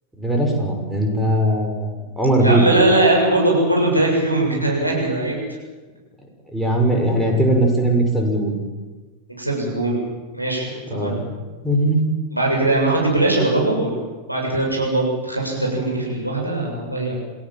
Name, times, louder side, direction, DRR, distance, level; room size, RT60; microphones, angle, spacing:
voice 1, 0.2-2.9 4.4-4.6 6.5-8.6 10.9-11.3 11.6-12.0, right 1 dB, 5° right, 1 dB, 6.1 m, -19 dB
voice 2, 2.4-5.4 9.3-10.0 10.3-11.2 12.3-17.1, right 2 dB, 90° right, -2 dB, 7.3 m, -20 dB
27.5 x 17.0 x 7.6 m, 1.3 s
figure-of-eight pair, 90°, 0 cm